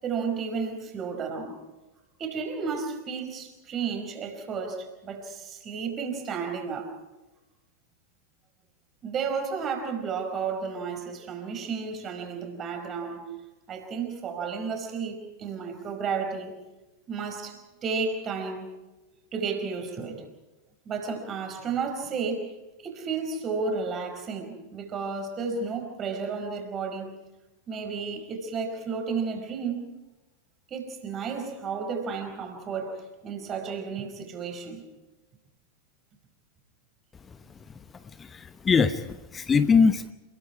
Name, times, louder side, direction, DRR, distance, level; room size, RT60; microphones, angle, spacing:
voice 1, 0.0-1.6 2.2-6.9 9.0-13.3 13.7-16.6 17.1-18.7 19.3-20.3 20.8-22.5 22.8-27.1 27.7-29.9 30.7-34.8, right 5 dB, 30° right, 4 dB, 5.0 m, -32 dB
voice 2, 38.2-40.1, left 5 dB, 20° left, 11 dB, 1.0 m, -22 dB
28.5 x 21.0 x 4.8 m, 1.1 s
figure-of-eight pair, 90°, 0 cm